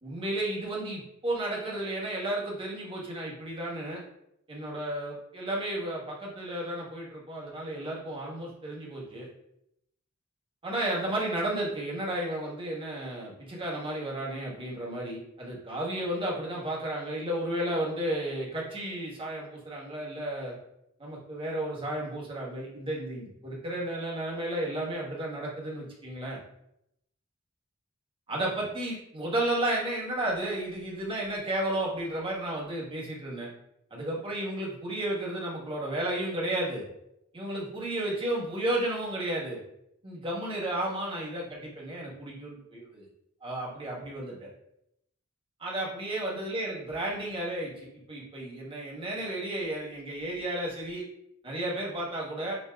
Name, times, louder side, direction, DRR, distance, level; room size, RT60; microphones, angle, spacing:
voice 1, 0.0-4.0 4.5-9.3 10.6-20.5 21.0-26.4 28.3-33.5 33.9-36.8 37.3-39.6 40.0-43.1 43.4-44.5 45.6-51.0 51.4-52.6, right 1 dB, 25° right, -4 dB, 1.2 m, -33 dB
6.1 x 2.7 x 2.2 m, 0.79 s
head